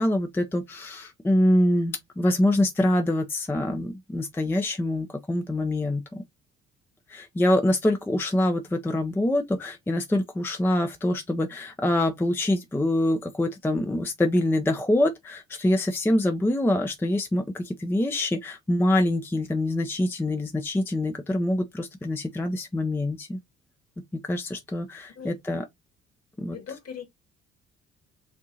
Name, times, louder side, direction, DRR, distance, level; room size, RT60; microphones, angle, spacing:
voice 1, 0.0-6.0 7.1-23.4 24.3-25.6 26.4-26.6, left 1 dB, 5° left, 0.5 m, -25 dB
voice 2, 26.5-27.0, left 7 dB, 45° left, 1.7 m, -39 dB
6.3 x 2.7 x 2.7 m
figure-of-eight pair, 45°, 35 cm